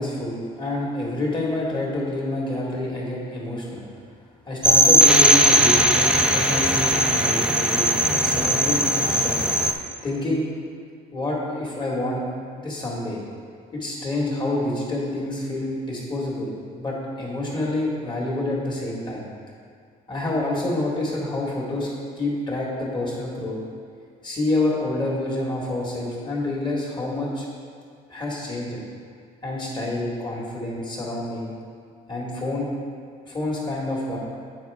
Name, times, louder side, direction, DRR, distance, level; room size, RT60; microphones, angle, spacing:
voice 1, 0.0-3.8 4.5-9.3 10.0-10.4 11.1-12.2 12.5-13.2 13.7-19.3 20.1-21.9 22.2-23.6 24.2-27.4 28.1-28.8 29.4-31.5 32.1-32.7 33.2-34.2, left 2 dB, 25° left, -4 dB, 1.8 m, -27 dB
sound 1, 4.6-9.7, right 1 dB, 5° right, 0.5 m, -19 dB
8.9 x 4.4 x 3.5 m, 2.2 s
cardioid pair, 110°, 17 cm